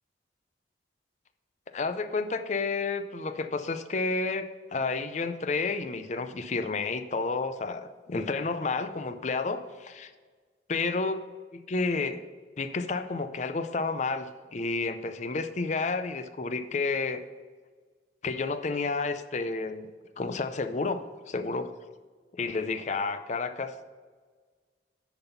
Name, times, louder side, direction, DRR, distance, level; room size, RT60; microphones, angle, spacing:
voice 1, 1.7-10.1 10.7-11.2 11.5-12.2 12.6-17.2 18.2-19.9 20.2-21.7 22.3-23.7, left 3 dB, 40° left, 10 dB, 0.5 m, -31 dB
10.5 x 3.9 x 5.6 m, 1.5 s
head